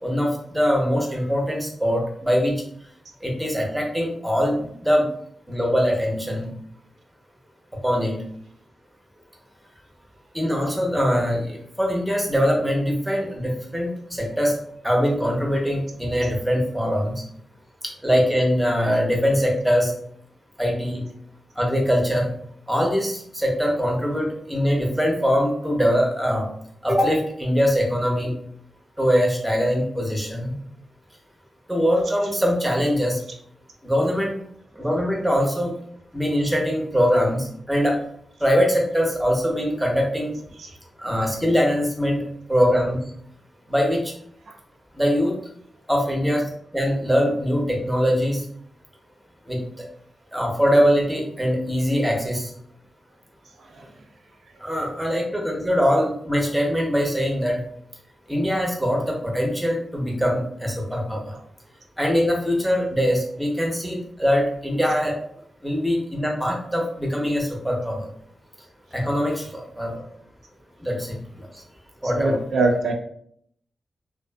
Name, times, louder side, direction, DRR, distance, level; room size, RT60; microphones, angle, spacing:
voice 1, 0.0-2.5 3.2-5.1 5.5-6.5 7.8-8.2 10.3-14.6 14.8-17.2 17.8-19.9 20.6-21.0 21.6-22.3 22.7-26.5 26.8-28.3 29.0-30.6 31.7-33.2 33.8-34.3 34.7-35.7 36.1-38.0 38.4-40.3 41.0-42.2 42.5-43.0 43.7-44.1 44.9-45.3 45.9-46.4 46.7-48.4 49.5-49.8 50.3-52.5 54.6-57.6 58.3-61.3 62.0-65.1 65.6-68.1 68.9-70.0 70.8-71.6 72.0-72.4, equal, 5° right, -1 dB, 0.8 m, -22 dB
voice 2, 72.2-72.9, right 2 dB, 80° right, 1 dB, 0.4 m, -22 dB
2.4 x 2.4 x 2.2 m, 0.66 s
cardioid pair, 70°, 0 cm